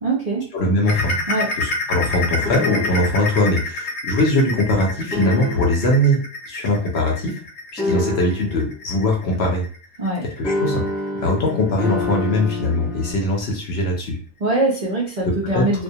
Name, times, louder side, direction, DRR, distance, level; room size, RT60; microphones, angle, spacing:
voice 1, 0.0-0.5 1.3-1.5 10.0-10.2 14.4-15.8, right 2 dB, 65° right, -4 dB, 0.4 m, -22 dB
voice 2, 0.5-1.1 1.6-6.2 6.5-7.4 7.7-9.6 10.4-10.8 11.1-14.2 15.5-15.8, left 1 dB, 60° left, 0 dB, 0.7 m, -21 dB
sound 1, 0.8-12.1 12.5-12.7 13.1-13.2 13.8-13.9, left 2 dB, 85° left, 1.0 m, -29 dB
sound 2, 2.4-3.2 5.1-5.9 7.8-8.6 10.4-13.1, left 2 dB, 10° left, 0.7 m, -27 dB
2.2 x 2.2 x 2.7 m, 0.40 s
omnidirectional pair, 1.4 m